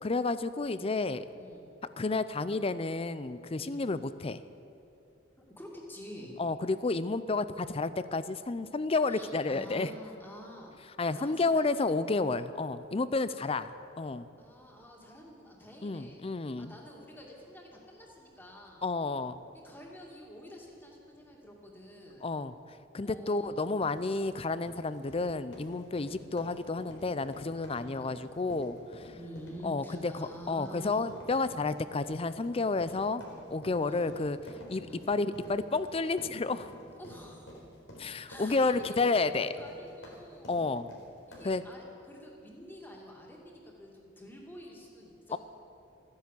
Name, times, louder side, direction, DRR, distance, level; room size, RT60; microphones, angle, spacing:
voice 1, 0.0-1.3 2.0-4.4 6.4-9.9 11.0-14.3 15.8-16.7 18.8-19.4 22.2-22.5 22.9-29.1 29.6-33.2 33.5-34.4 34.7-36.7 38.0-39.5 40.5-40.9 41.4-41.6 45.3-45.4, left 3 dB, 30° left, 14 dB, 0.5 m, -31 dB
voice 2, 1.4-1.7 3.6-3.9 5.6-6.3 9.1-10.7 11.1-11.9 14.4-16.2 16.6-18.9 19.5-22.3 23.0-23.6 26.0-26.3 27.8-28.0 29.2-31.1 33.8-34.1 34.8-35.1 37.0-37.6 38.3-40.6 41.3-45.4, equal, 10° left, -1 dB, 2.4 m, -48 dB
sound 1, 23.6-41.7, equal, 85° left, 4.0 m, -50 dB
14.0 x 10.5 x 8.4 m, 2.6 s
head